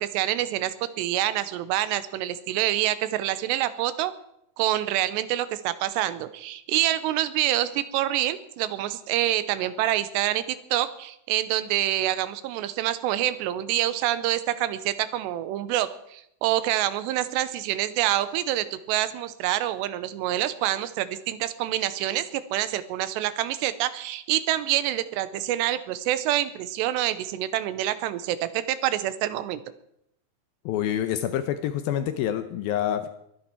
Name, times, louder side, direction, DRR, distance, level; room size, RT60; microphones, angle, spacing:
voice 1, 0.0-4.1 4.6-10.4 10.7-29.6, right 13 dB, 90° right, 14 dB, 3.0 m, -26 dB
voice 2, 30.7-33.1, left 10 dB, 75° left, 9 dB, 2.3 m, -27 dB
22.5 x 9.8 x 4.5 m, 0.75 s
omnidirectional pair, 4.8 m